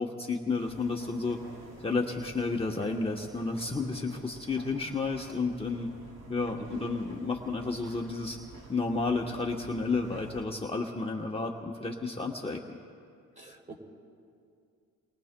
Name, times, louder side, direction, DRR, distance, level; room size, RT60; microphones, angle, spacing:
voice 1, 0.0-1.4 1.8-5.9 6.3-8.4 8.7-12.8, left 3 dB, 20° left, 0 dB, 1.0 m, -31 dB
sound 1, 0.6-10.4, right 2 dB, 80° right, 2.7 m, -50 dB
voice 2, 13.4-13.8, right 2 dB, 25° right, 0 dB, 2.9 m, -46 dB
29.5 x 22.0 x 2.2 m, 2.4 s
cardioid pair, 90°, 30 cm